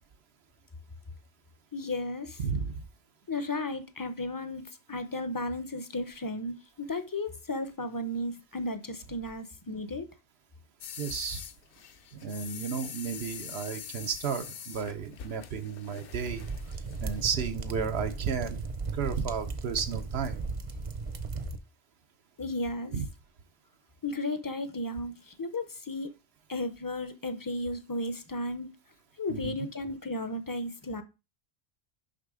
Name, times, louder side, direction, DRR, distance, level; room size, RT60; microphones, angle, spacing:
voice 1, 1.7-2.4 3.3-10.1 22.4-23.0 24.0-26.1 26.5-28.7 29.2-31.0, left 2 dB, 25° left, 0.5 m, -34 dB
voice 2, 2.4-2.7 11.0-11.4 12.1-16.5 17.0-18.6 18.9-20.4 22.9-23.1 29.3-29.6, right 6 dB, 80° right, 0.9 m, -33 dB
sound 1, 10.8-17.4, left 8 dB, 65° left, 0.8 m, -44 dB
sound 2, 16.3-21.6, right 4 dB, 40° right, 0.6 m, -36 dB
6.5 x 5.5 x 3.6 m
omnidirectional pair, 1.0 m